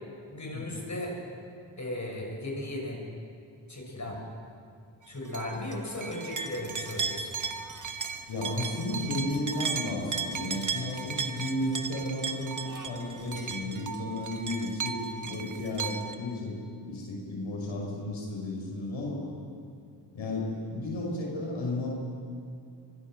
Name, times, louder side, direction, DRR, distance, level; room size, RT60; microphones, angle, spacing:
voice 1, 0.3-1.2 1.8-3.0 3.7-4.2 5.1-7.3, left 1 dB, 40° left, -1 dB, 7.1 m, -36 dB
sound 1, 5.3-16.2, right 5 dB, 40° right, 1.6 m, -36 dB
voice 2, 8.3-16.6 16.8-19.2 20.1-21.9, left 1 dB, 85° left, -2 dB, 5.9 m, -33 dB
25.0 x 23.0 x 6.6 m, 2.4 s
cardioid pair, 55°, 45 cm